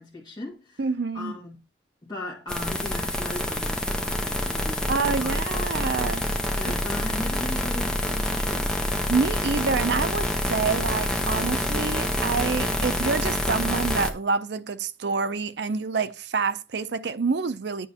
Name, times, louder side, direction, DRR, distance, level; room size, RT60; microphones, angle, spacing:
voice 1, 0.0-0.9 1.1-1.6 2.0-5.4 6.5-8.7, left 2 dB, 20° left, 2.2 m, -38 dB
voice 2, 0.8-1.4 4.9-6.3 9.1-17.9, right 4 dB, 65° right, 0.5 m, -27 dB
sound 1, 2.5-14.1, left 1 dB, 5° left, 0.7 m, -27 dB
9.2 x 6.0 x 2.8 m
head